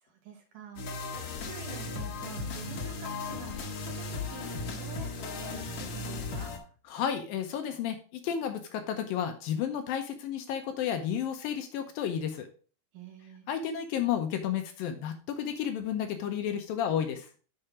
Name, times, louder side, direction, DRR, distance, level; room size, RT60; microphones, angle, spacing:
voice 1, 0.0-1.1 1.4-6.5 12.9-13.5, right 7 dB, 65° right, 3 dB, 2.2 m, -48 dB
sound 1, 0.8-6.6, left 3 dB, 60° left, 1.9 m, -36 dB
voice 2, 6.9-12.5 13.5-17.3, left 9 dB, 80° left, 6 dB, 2.3 m, -32 dB
6.6 x 5.7 x 4.7 m, 0.39 s
omnidirectional pair, 4.5 m